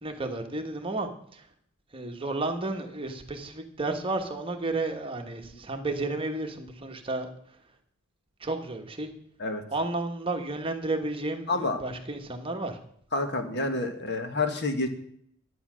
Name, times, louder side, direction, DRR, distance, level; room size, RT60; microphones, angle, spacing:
voice 1, 0.0-1.4 1.9-7.3 8.4-9.1 9.7-12.8, right 2 dB, 25° right, 4 dB, 1.3 m, -32 dB
voice 2, 13.1-14.9, left 2 dB, 50° left, 7 dB, 1.6 m, -28 dB
11.5 x 9.3 x 6.3 m, 0.66 s
head